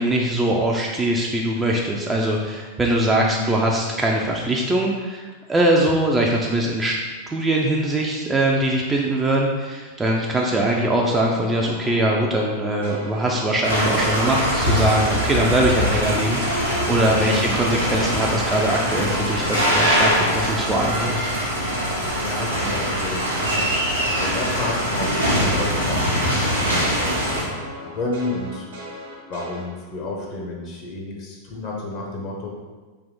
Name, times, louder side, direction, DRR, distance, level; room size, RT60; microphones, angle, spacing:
voice 1, 0.0-6.9 7.3-21.3, right 1 dB, 15° right, -1 dB, 0.4 m, -22 dB
voice 2, 3.1-3.4 17.2-17.5 22.1-23.3 24.1-28.7 29.3-32.5, left 2 dB, 40° left, -1 dB, 0.7 m, -31 dB
sound 1, 10.4-16.7 17.0-26.3 26.6-29.6, right 1 dB, 60° right, 1.0 m, -38 dB
sound 2, 13.6-27.4, equal, 90° right, 1.0 m, -22 dB
3.4 x 2.6 x 3.9 m, 1.3 s
figure-of-eight pair, 90°, 0 cm